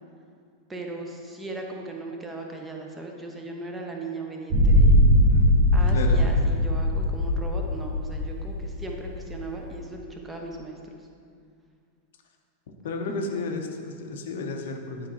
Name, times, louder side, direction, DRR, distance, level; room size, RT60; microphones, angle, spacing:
voice 1, 0.7-5.1 5.7-10.8, right 2 dB, 15° right, 1 dB, 0.9 m, -37 dB
sound 1, 4.5-9.7, equal, 40° right, 0.9 m, -20 dB
voice 2, 5.3-6.3 12.8-15.1, left 3 dB, 60° left, 3 dB, 0.7 m, -33 dB
10.5 x 4.6 x 2.9 m, 2.2 s
figure-of-eight pair, 90°, 0 cm